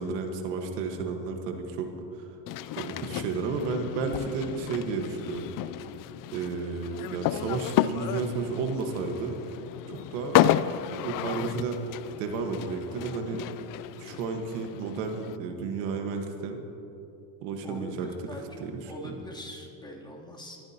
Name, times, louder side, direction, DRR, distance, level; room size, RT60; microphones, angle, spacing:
voice 1, 0.0-1.9 2.1-2.3 2.8-5.5 6.3-9.3 9.9-10.4 10.9-11.8 12.2-13.4 14.0-16.6 17.4-18.1 18.6-19.2, right 4 dB, 80° right, 4 dB, 1.6 m, -32 dB
sound 1, 2.5-15.4, left 12 dB, 45° left, 0.5 m, -31 dB
voice 2, 17.6-20.6, left 1 dB, 10° left, -3 dB, 3.0 m, -42 dB
23.5 x 14.0 x 2.9 m, 2.9 s
supercardioid pair, 95°, 48 cm